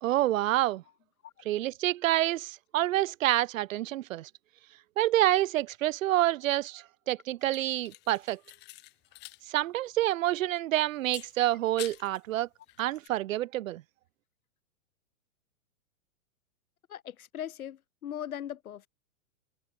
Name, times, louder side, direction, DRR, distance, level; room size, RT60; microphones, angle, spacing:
voice 1, 0.0-0.8 1.5-4.3 5.0-8.4 9.5-12.5 12.8-13.8, right 14 dB, 70° right, 0.8 m, -28 dB
sound 1, 7.4-9.4 9.7-9.8 11.0-12.2 12.6-13.1, left 21 dB, 25° left, 1.5 m, -47 dB
voice 2, 16.9-18.9, left 10 dB, 85° left, 3.5 m, -40 dB
supercardioid pair, 160°, 42 cm